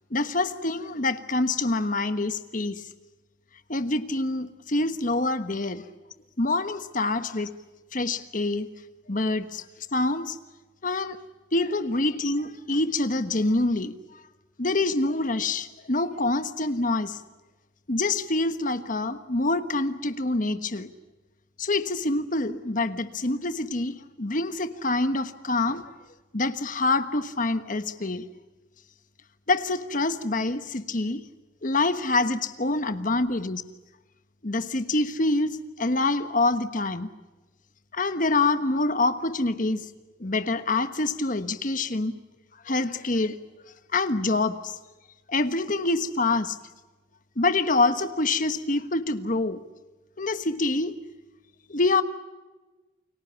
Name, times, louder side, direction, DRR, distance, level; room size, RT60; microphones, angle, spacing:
voice 1, 0.1-2.8 3.7-5.9 6.4-7.5 7.9-8.7 9.1-9.6 9.9-10.4 10.8-11.2 11.5-14.0 14.6-17.2 17.9-20.9 21.6-25.9 26.3-28.3 29.5-31.2 31.6-33.6 34.4-37.1 37.9-39.8 40.2-42.1 42.7-43.4 43.9-44.7 45.3-46.5 47.4-49.6 50.2-51.0 51.7-52.0, left 2 dB, 45° left, 1.3 m, -26 dB
29.5 x 23.0 x 7.0 m
head